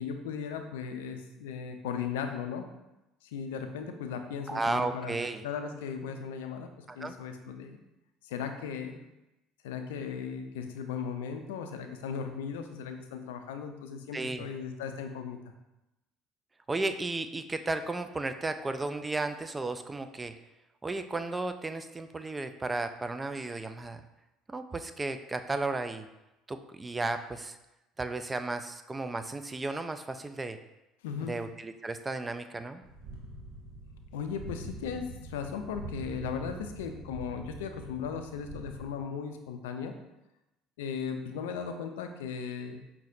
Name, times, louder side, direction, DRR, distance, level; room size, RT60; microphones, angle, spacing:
voice 1, 0.0-2.7 3.2-6.7 6.9-7.8 8.2-9.0 9.6-15.4 31.0-31.4 34.1-39.9 40.8-42.8, left 6 dB, 75° left, 6 dB, 0.4 m, -37 dB
voice 2, 4.5-5.4 6.9-7.1 14.1-14.5 16.7-20.3 20.8-24.0 24.5-26.1 26.5-27.6 28.0-30.6 31.2-32.8, right 2 dB, 20° right, 9 dB, 0.3 m, -34 dB
sound 1, 32.8-38.9, right 2 dB, 60° right, 0.7 m, -44 dB
5.6 x 2.9 x 2.5 m, 0.96 s
hypercardioid pair, 65°, 0 cm